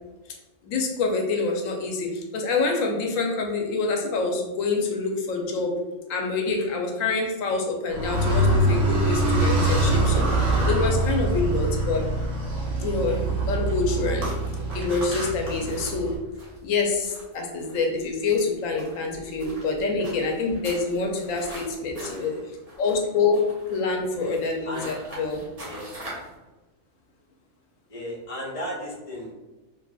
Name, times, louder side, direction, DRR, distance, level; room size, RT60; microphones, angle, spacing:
voice 1, 0.6-5.8 6.1-12.1 12.8-14.3 14.7-16.2 16.6-22.3 22.8-25.4, left 3 dB, 70° left, 2 dB, 1.0 m, -26 dB
Car, 7.9-16.2, right 1 dB, 65° right, 1.3 m, -24 dB
sound 1, 14.2-26.4, right 1 dB, 30° right, 1.1 m, -44 dB
voice 2, 21.9-22.5 23.9-24.4 24.6-25.2 25.6-25.9 27.9-29.3, left 1 dB, 30° left, -3 dB, 0.8 m, -36 dB
3.8 x 2.8 x 2.3 m, 1.1 s
omnidirectional pair, 1.5 m